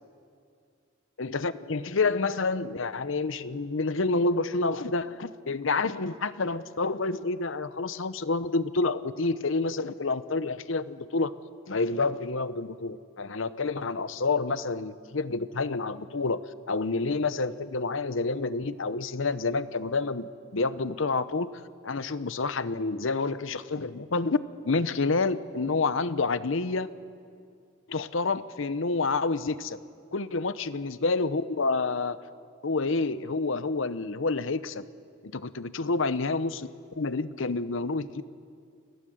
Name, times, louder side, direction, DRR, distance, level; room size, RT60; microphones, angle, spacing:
voice 1, 1.2-11.3 11.7-21.5 21.8-24.4 24.6-26.9 27.9-29.8 30.1-32.2 32.6-34.8 35.2-36.7 37.0-38.2, left 3 dB, 75° left, 14 dB, 0.8 m, -28 dB
29.5 x 16.0 x 7.8 m, 2.3 s
head